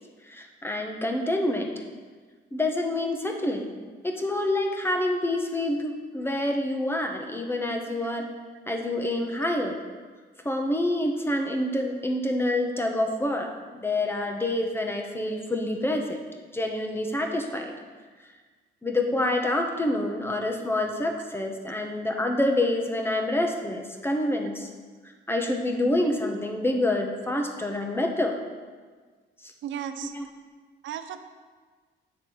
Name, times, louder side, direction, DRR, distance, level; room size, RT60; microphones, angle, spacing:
voice 1, 0.3-1.7 2.5-8.3 8.7-9.8 10.4-13.5 13.8-16.2 16.5-17.7 18.8-24.7 25.3-28.3 30.1-30.3, left 1 dB, 10° left, 3 dB, 1.0 m, -27 dB
voice 2, 29.6-30.1 30.8-31.3, right 9 dB, 75° right, 9 dB, 0.5 m, -35 dB
8.6 x 3.6 x 6.2 m, 1.5 s
cardioid pair, 90°, 20 cm